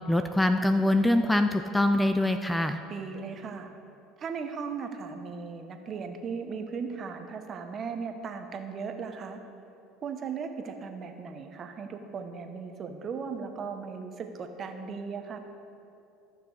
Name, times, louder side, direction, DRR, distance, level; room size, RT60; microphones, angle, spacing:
voice 1, 0.1-2.8, left 1 dB, 5° left, 8 dB, 0.4 m, -24 dB
voice 2, 2.9-3.7 4.2-9.4 10.0-15.4, right 5 dB, 40° right, 6 dB, 1.1 m, -37 dB
14.0 x 6.0 x 4.9 m, 2.7 s
supercardioid pair, 90°, 0 cm